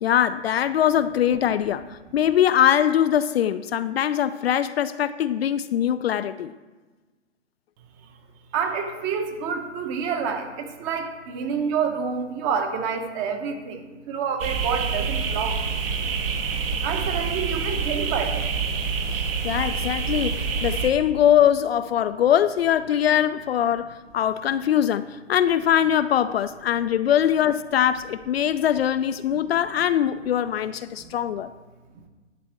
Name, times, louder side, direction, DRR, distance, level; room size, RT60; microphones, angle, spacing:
voice 1, 0.0-1.9 2.1-6.5 19.4-31.5, left 10 dB, 55° left, 0.5 m, -22 dB
voice 2, 8.5-15.6 16.8-18.5 31.0-31.1, right 6 dB, 25° right, 1.0 m, -28 dB
sound 1, 14.4-20.9, right 5 dB, 50° right, 1.3 m, -27 dB
11.5 x 4.2 x 7.4 m
hypercardioid pair, 140°, 37 cm